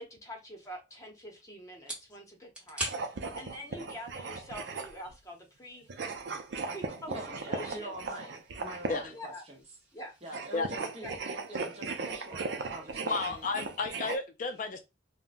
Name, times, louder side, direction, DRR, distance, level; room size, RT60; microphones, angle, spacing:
voice 1, 0.0-6.2 6.7-8.3 9.1-9.4 9.9-10.2 10.8-11.1, equal, 20° left, 0.8 m, -46 dB
sound 1, 0.6-13.8, right 1 dB, 5° right, 1.0 m, -48 dB
sound 2, 2.8-5.1 5.9-9.2 10.2-14.2, right 4 dB, 80° right, 0.5 m, -38 dB
voice 2, 7.1-9.6 10.2-13.5, right 1 dB, 35° right, 0.9 m, -45 dB
voice 3, 13.1-14.8, left 3 dB, 45° left, 0.4 m, -32 dB
3.6 x 2.1 x 2.5 m
head